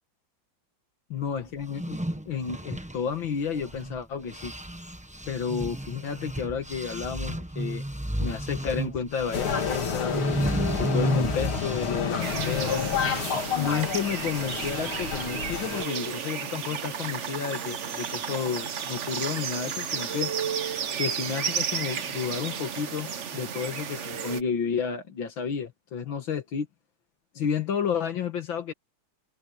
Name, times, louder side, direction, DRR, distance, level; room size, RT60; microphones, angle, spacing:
voice 1, 1.1-4.5 5.3-7.8 8.2-10.2 10.8-12.9 13.6-20.3 21.0-26.7 27.4-28.7, left 7 dB, 70° left, 2.2 m, -31 dB
sound 1, 1.6-4.0 4.3-12.2, right 1 dB, 5° right, 0.7 m, -32 dB
sound 2, 9.3-15.8, left 6 dB, 90° left, 3.2 m, -30 dB
sound 3, 12.2-24.4, right 7 dB, 45° right, 1.0 m, -33 dB
omnidirectional pair, 2.2 m